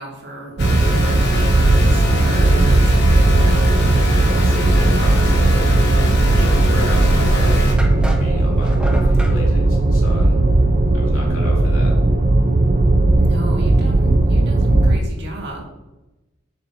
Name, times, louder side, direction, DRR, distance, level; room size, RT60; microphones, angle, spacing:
voice 1, 0.0-2.8 3.0-3.7 13.2-15.6, right 1 dB, 55° right, -1 dB, 1.9 m, -33 dB
sound 1, 0.6-7.7, left 2 dB, 55° left, 1.2 m, -26 dB
sound 2, 0.6-15.0, right 2 dB, 35° right, 0.4 m, -16 dB
voice 2, 4.2-5.7 6.3-7.7 8.2-10.4 10.9-11.9, left 1 dB, 90° left, -3 dB, 2.5 m, -32 dB
sound 3, 7.8-9.4, equal, 5° right, 0.8 m, -31 dB
7.0 x 6.5 x 2.9 m, 1.0 s
head